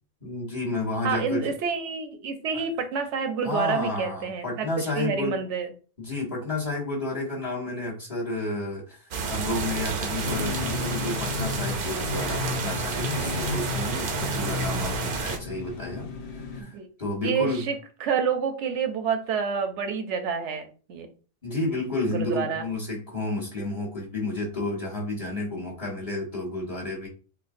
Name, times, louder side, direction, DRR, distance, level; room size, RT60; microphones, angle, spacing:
voice 1, 0.2-1.5 2.5-2.6 3.4-5.4 6.0-16.1 16.4-16.7 17.0-17.6 21.4-27.1, left 2 dB, 30° left, -3 dB, 1.3 m, -31 dB
voice 2, 1.0-4.7 5.0-5.7 11.5-11.8 14.8-15.1 16.6-16.9 17.2-21.1 22.1-22.6, right 6 dB, 80° right, 7 dB, 0.9 m, -28 dB
sound 1, 9.1-15.4, right 5 dB, 60° right, 0.7 m, -30 dB
sound 2, 10.2-16.6, left 5 dB, 60° left, 0.8 m, -33 dB
4.4 x 2.3 x 2.5 m, 0.37 s
omnidirectional pair, 1.2 m